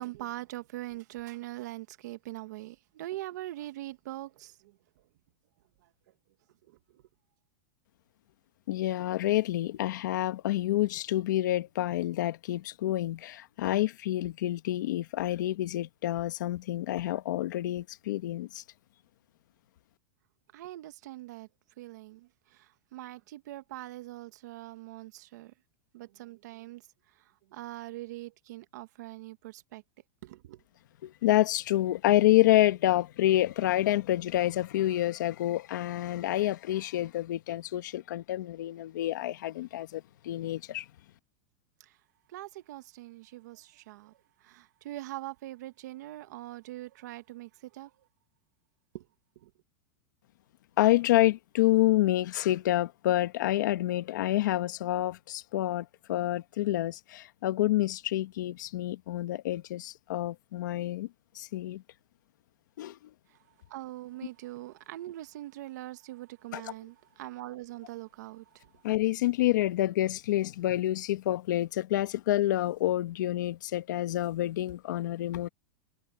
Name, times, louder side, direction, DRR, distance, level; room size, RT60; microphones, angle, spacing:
voice 1, 0.0-4.8 6.7-7.0 20.5-21.5 21.8-25.5 25.9-26.8 27.1-29.8 30.2-30.6 41.8-42.0 42.3-47.9 48.9-49.1 49.3-49.5 63.3-63.4 63.7-68.8, right 16 dB, 60° right, 1.5 m, -42 dB
voice 2, 8.7-18.6 31.0-40.8 50.8-61.1 61.3-61.8 62.8-63.0 66.5-66.6 68.8-75.5, left 14 dB, 70° left, 1.5 m, -28 dB
supercardioid pair, 165°, 10 cm